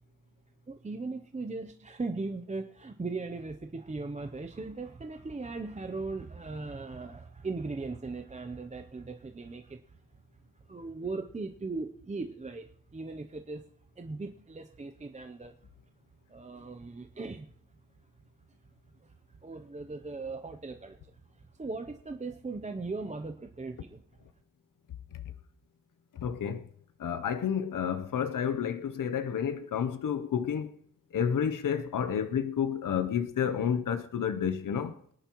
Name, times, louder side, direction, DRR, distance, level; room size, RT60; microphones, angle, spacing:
voice 1, 0.7-10.0 10.7-13.6 14.0-15.5 16.3-17.5 19.0-24.0, right 3 dB, 20° right, 0.6 m, -38 dB
voice 2, 26.1-26.7 27.0-30.8 31.1-35.0, left 8 dB, 70° left, 0.7 m, -30 dB
23.5 x 10.5 x 3.0 m
wide cardioid pair, 160°, 33 cm